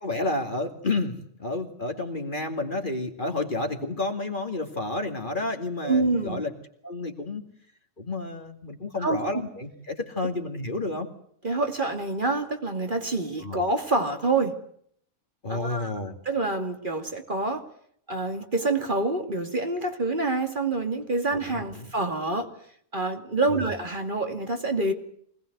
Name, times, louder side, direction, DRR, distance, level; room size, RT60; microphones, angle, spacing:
voice 1, 0.0-6.5 6.8-7.5 8.0-11.1 13.4-13.6 15.4-16.2 21.5-21.9 23.5-23.6, left 2 dB, 40° left, 4 dB, 2.6 m, -30 dB
voice 2, 5.8-6.4 9.0-9.4 11.4-14.6 15.5-15.9 16.3-17.6 18.1-22.5 22.9-24.9, right 2 dB, 40° right, 5 dB, 2.6 m, -27 dB
24.5 x 19.0 x 8.0 m, 0.66 s
omnidirectional pair, 1.4 m